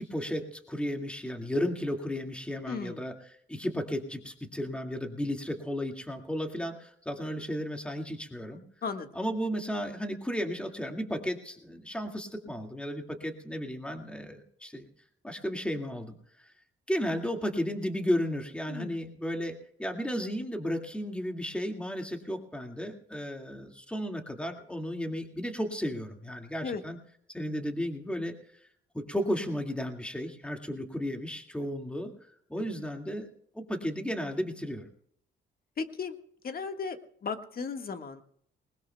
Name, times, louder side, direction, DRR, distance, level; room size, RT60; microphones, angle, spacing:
voice 1, 0.0-8.6 9.1-14.9 15.2-16.5 16.9-27.0 27.3-28.4 28.9-32.1 32.5-33.3 33.5-34.9, equal, 5° left, 4 dB, 2.1 m, -34 dB
voice 2, 2.6-3.0 8.8-9.1 18.7-19.0 26.6-26.8 35.8-36.2 36.4-38.2, left 5 dB, 50° left, 7 dB, 1.6 m, -35 dB
20.5 x 20.0 x 2.3 m, 0.68 s
cardioid pair, 90°, 20 cm